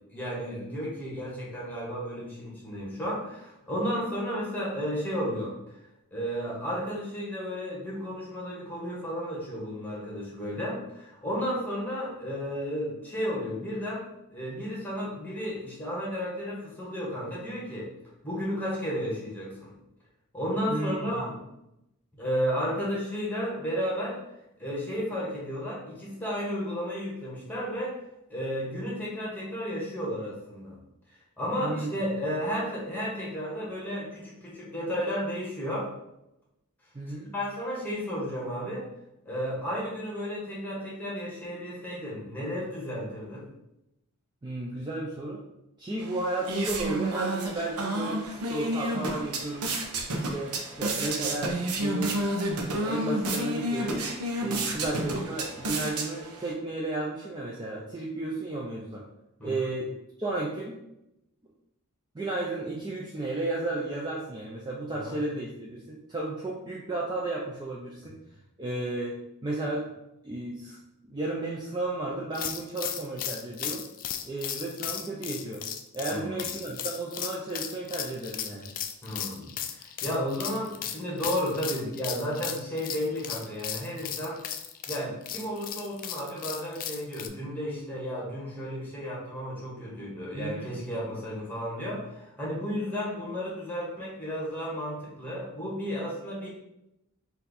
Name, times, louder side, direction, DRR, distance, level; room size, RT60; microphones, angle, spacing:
voice 1, 0.1-5.5 6.1-17.9 18.2-19.7 20.3-21.3 22.2-24.2 24.6-27.9 28.3-30.8 31.4-35.9 37.3-38.9 39.2-43.5 59.4-59.7 64.9-65.2 76.1-76.4 79.0-84.4 84.9-96.5, equal, 10° left, -5 dB, 1.5 m, -33 dB
voice 2, 20.7-21.4 31.6-31.9 36.9-37.3 44.4-45.4 45.8-49.7 50.1-52.2 52.8-54.1 54.4-59.0 59.4-59.9 60.2-60.8 62.1-68.2 68.6-69.9 70.2-70.8 71.1-73.8 74.2-75.6 75.9-78.7 90.3-90.7, right 2 dB, 20° right, -3 dB, 0.5 m, -33 dB
sound 1, 46.0-56.5, right 1 dB, 80° right, 0.7 m, -31 dB
sound 2, 72.3-87.3, left 9 dB, 40° left, 0.4 m, -36 dB
4.3 x 2.7 x 4.1 m, 0.87 s
head